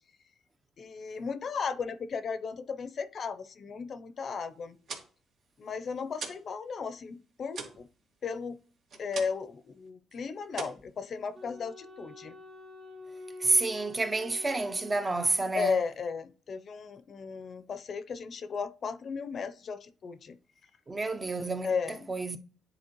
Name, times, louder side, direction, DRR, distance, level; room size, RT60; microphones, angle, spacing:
voice 1, 0.8-4.8 5.6-7.9 8.2-8.6 9.0-12.3 15.5-20.4 21.6-22.1, left 5 dB, 50° left, 0.6 m, -35 dB
sound 1, 4.6-6.5 6.8-9.6 9.9-10.2 10.5-11.6, right 4 dB, 65° right, 1.9 m, -43 dB
Wind instrument woodwind instrument, 11.3-15.8, left 3 dB, 50° right, 2.1 m, -48 dB
voice 2, 13.4-15.8 20.9-21.7 22.1-22.4, right 2 dB, 25° right, 0.7 m, -29 dB
9.9 x 4.2 x 3.0 m
cardioid pair, 90°, 0 cm